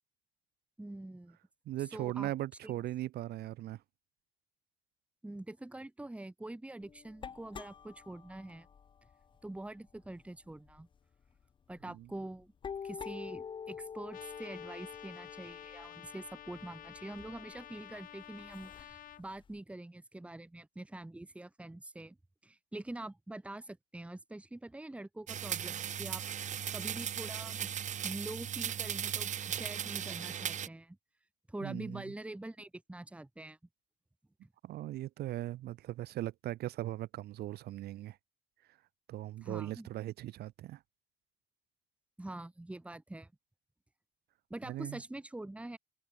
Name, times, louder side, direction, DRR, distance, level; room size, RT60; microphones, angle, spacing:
voice 1, 0.8-1.4 1.9-2.3 2.6-2.7 5.2-8.7 9.4-10.9 11.7-12.5 12.8-22.2 22.4-27.7 28.0-31.0 31.5-33.6 34.4-34.5 39.4-39.9 42.2-43.3 44.5-45.8, right 1 dB, 5° right, 1.5 m, -45 dB
voice 2, 1.7-3.8 11.8-12.1 31.6-32.0 34.6-38.2 39.1-40.8 44.7-45.0, right 14 dB, 70° right, 1.9 m, -39 dB
sound 1, 6.8-10.8 11.2-11.4 11.7-19.6, left 6 dB, 30° left, 0.6 m, -48 dB
Trumpet, 14.1-19.2, left 11 dB, 55° left, 1.3 m, -51 dB
sound 2, 25.3-30.7, right 9 dB, 45° right, 1.2 m, -37 dB
open air
cardioid pair, 110°, 17 cm